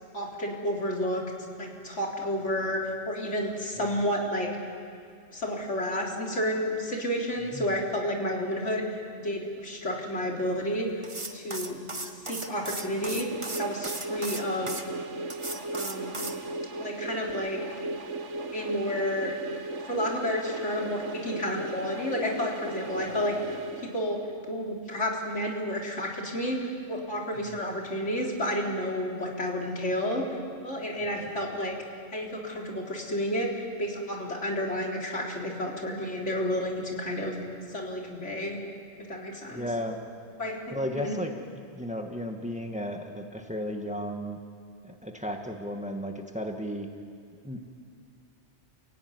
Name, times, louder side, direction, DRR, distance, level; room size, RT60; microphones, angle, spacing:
voice 1, 0.1-1.2 1.6-4.5 5.3-11.0 11.3-11.8 12.2-13.3 13.6-14.8 15.7-16.3 16.8-17.8 18.5-19.4 19.9-23.6 23.8-24.2 24.4-31.8 32.1-37.4 37.7-38.6 39.0-39.6 40.4-41.2, equal, 85° left, -1 dB, 4.0 m, -31 dB
sound 1, 11.0-14.8 15.3-16.4, right 2 dB, 25° right, 1.5 m, -36 dB
sound 2, 12.7-24.5, right 2 dB, 90° right, 1.7 m, -36 dB
voice 2, 39.5-40.0 40.7-44.4 44.8-46.9 47.4-47.7, equal, 5° right, 3 dB, 1.8 m, -35 dB
29.5 x 16.5 x 9.7 m, 2.3 s
omnidirectional pair, 1.2 m